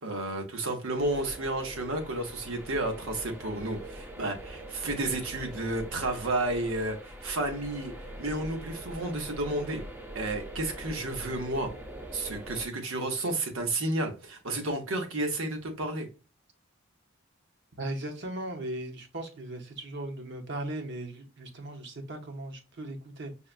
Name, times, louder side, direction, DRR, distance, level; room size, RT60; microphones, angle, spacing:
voice 1, 0.0-9.8 10.1-11.7 12.1-16.1, right 2 dB, 85° right, 1.1 m, -31 dB
sound 1, 1.0-12.7, right 1 dB, 10° right, 0.6 m, -43 dB
voice 2, 17.8-23.3, right 1 dB, 60° right, 0.9 m, -37 dB
5.4 x 2.2 x 2.5 m
head